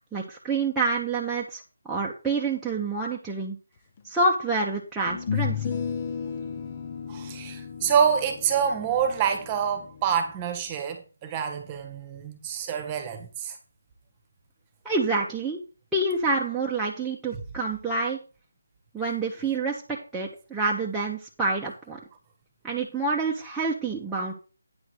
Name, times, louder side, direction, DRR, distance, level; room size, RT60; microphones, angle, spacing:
voice 1, 0.0-3.6 4.0-5.7 14.8-15.6 15.9-18.2 18.9-19.8 20.1-22.0 22.6-24.3, right 3 dB, 5° right, 1.3 m, -27 dB
sound 1, 4.0-4.1 5.1-10.3, left 7 dB, 30° left, 1.2 m, -34 dB
voice 2, 7.1-13.6, right 7 dB, 20° right, 1.6 m, -27 dB
9.7 x 4.6 x 6.4 m
figure-of-eight pair, 155°, 0 cm